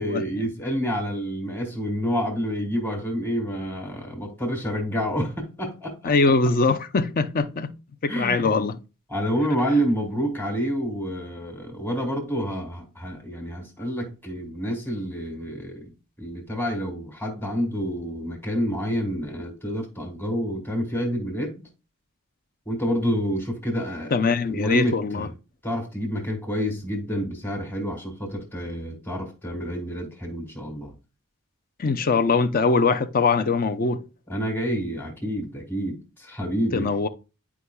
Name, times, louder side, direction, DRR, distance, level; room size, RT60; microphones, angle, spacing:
voice 1, 0.0-6.1 8.1-8.5 9.1-15.9 16.2-21.6 22.7-24.1 24.5-25.3 25.6-30.9 34.3-36.9, equal, 10° left, 1.4 m, -28 dB
voice 2, 6.0-7.7 8.0-8.8 24.1-25.3 31.8-34.0 36.7-37.1, left 4 dB, 40° left, 0.5 m, -22 dB
9.8 x 4.7 x 2.2 m
head